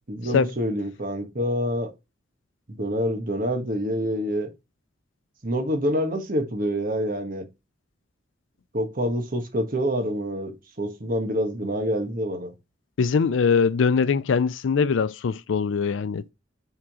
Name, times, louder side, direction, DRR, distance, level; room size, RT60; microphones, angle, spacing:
voice 1, 0.1-1.9 2.7-4.5 5.4-7.4 8.7-12.5, equal, 45° right, 1.3 m, -27 dB
voice 2, 13.0-16.3, left 5 dB, 85° left, 0.4 m, -22 dB
7.5 x 3.7 x 4.8 m
head